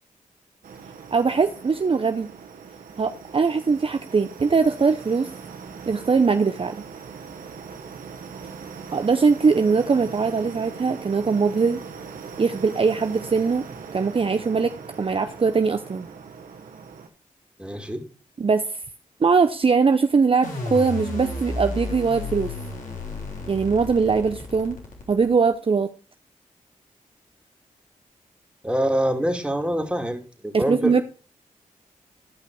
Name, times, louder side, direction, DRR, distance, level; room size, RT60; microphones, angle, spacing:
sound 1, 0.6-17.1, right 6 dB, 80° right, 1.2 m, -40 dB
voice 1, 1.1-2.3 3.0-5.3 5.9-6.8 8.9-11.8 12.4-13.6 13.9-14.7 15.0-16.1 18.4-18.8 19.2-22.5 23.5-24.8 25.1-25.9 30.5-31.0, right 5 dB, 40° right, 8 dB, 0.6 m, -21 dB
voice 2, 17.6-18.0 28.6-31.0, right 1 dB, 5° right, 3 dB, 2.6 m, -25 dB
sound 2, 20.4-25.5, left 3 dB, 65° left, 3.3 m, -32 dB
13.0 x 5.7 x 4.8 m, 0.39 s
cardioid pair, 45°, 14 cm